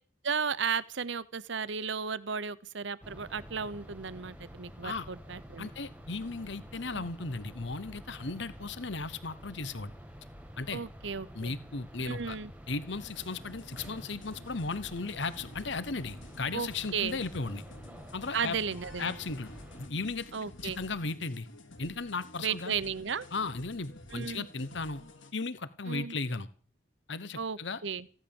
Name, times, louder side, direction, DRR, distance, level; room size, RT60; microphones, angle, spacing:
voice 1, 0.2-5.7 6.9-7.0 10.7-11.5 12.0-12.5 16.5-17.2 18.3-19.2 20.3-20.8 22.4-23.3 24.1-24.5 25.9-26.2 27.4-28.1, right 6 dB, 70° right, 17 dB, 0.9 m, -34 dB
sound 1, 3.0-19.9, equal, 5° right, 1.8 m, -49 dB
voice 2, 5.6-9.9 10.6-10.8 11.3-12.4 12.7-17.6 18.1-18.6 19.0-19.5 19.8-20.3 20.6-21.5 21.8-22.7 23.3-25.0 25.3-26.5 27.1-27.8, left 3 dB, 65° left, 15 dB, 1.0 m, -36 dB
sound 2, 13.0-25.3, left 1 dB, 85° left, 2.5 m, -52 dB
15.5 x 11.0 x 7.2 m, 0.42 s
head